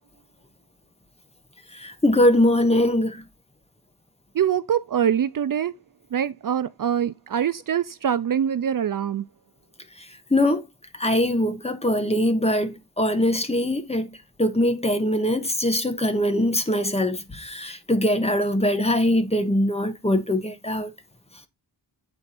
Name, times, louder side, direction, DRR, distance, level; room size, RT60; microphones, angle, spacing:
voice 1, 1.7-3.2 10.3-10.6 10.9-20.9, left 1 dB, 15° left, 1.0 m, -22 dB
voice 2, 4.3-5.7 6.1-9.3, right 9 dB, 55° right, 0.5 m, -24 dB
9.0 x 4.4 x 4.1 m
wide cardioid pair, 175°, 41 cm